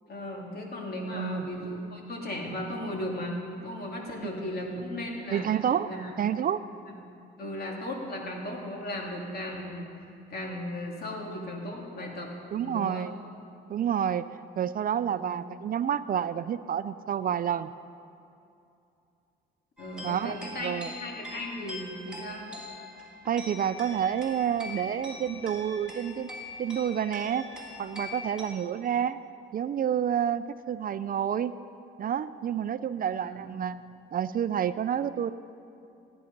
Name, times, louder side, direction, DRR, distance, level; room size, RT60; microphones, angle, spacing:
voice 1, 0.1-5.5 5.8-6.1 6.9-7.0 7.4-9.9 10.3-13.1 15.1-15.2 19.8-22.4 33.2-33.5, left 1 dB, 50° left, 0 dB, 2.6 m, -36 dB
voice 2, 1.1-1.5 5.3-5.9 6.2-6.6 12.5-13.1 13.7-14.3 14.6-17.7 20.0-20.9 23.3-26.3 26.6-27.5 27.8-29.2 29.5-31.6 32.0-33.8 34.1-35.3, right 9 dB, 45° right, 13 dB, 0.4 m, -29 dB
sound 1, 19.8-28.4, left 2 dB, 5° right, 3.2 m, -43 dB
16.0 x 9.7 x 5.3 m, 2.6 s
cardioid pair, 90°, 20 cm